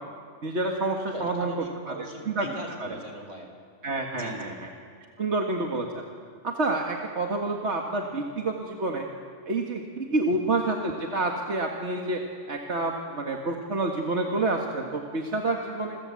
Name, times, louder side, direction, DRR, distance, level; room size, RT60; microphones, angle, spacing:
voice 1, 0.4-1.5 1.9-2.0 2.3-2.5 2.8-2.9 3.8-4.7 5.2-6.0 6.4-9.1 9.5-12.2 12.5-16.0, right 2 dB, 65° right, 1 dB, 2.1 m, -28 dB
voice 2, 1.1-3.5 4.1-4.6 10.3-10.4, right 1 dB, 85° right, 4 dB, 4.7 m, -39 dB
28.0 x 21.5 x 8.5 m, 2.1 s
omnidirectional pair, 1.2 m